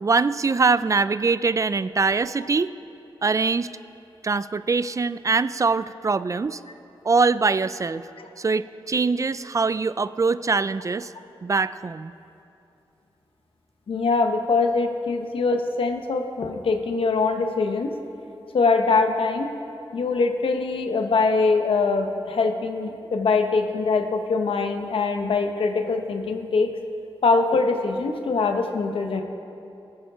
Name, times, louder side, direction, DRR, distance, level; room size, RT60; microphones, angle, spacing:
voice 1, 0.0-2.7 3.2-3.7 4.2-6.6 7.0-8.0 8.4-11.1 11.4-12.1, right 4 dB, 35° right, 15 dB, 0.4 m, -23 dB
voice 2, 13.9-17.9 18.5-19.5 19.9-26.7 27.2-29.2, left 4 dB, 80° left, 5 dB, 1.0 m, -23 dB
17.5 x 10.5 x 5.0 m, 2.8 s
cardioid pair, 75°, 9 cm